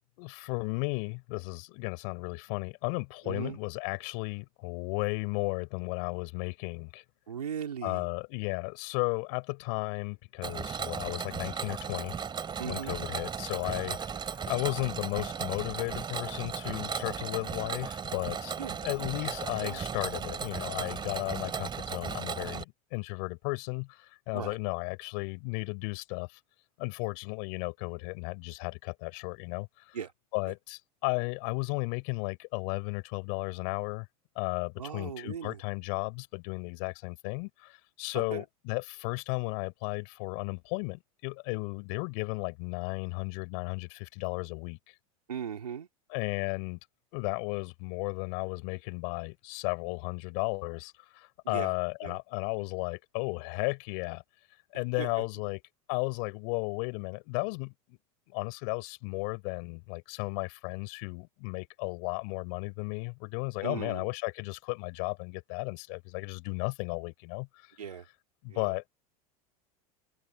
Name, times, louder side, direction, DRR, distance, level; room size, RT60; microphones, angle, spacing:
voice 1, 0.2-7.0 7.8-12.1 12.7-18.6 18.8-26.4 26.8-30.0 30.3-34.1 34.4-44.9 46.1-46.8 47.1-54.2 54.7-55.6 55.9-58.0 58.3-67.7 68.4-68.9, left 38 dB, 60° left, 4.1 m, -34 dB
voice 2, 3.2-3.6 7.3-8.1 12.6-13.0 18.6-18.8 19.6-19.8 24.3-24.6 29.9-30.1 30.5-30.6 34.8-35.6 38.1-38.5 45.3-45.9 51.4-51.7 52.0-52.2 55.0-55.3 63.6-64.1 67.8-68.1 68.5-68.8, right 8 dB, 90° right, 3.7 m, -38 dB
Mechanisms, 10.4-22.6, right 6 dB, 25° right, 2.9 m, -36 dB
hypercardioid pair, 90°, 19 cm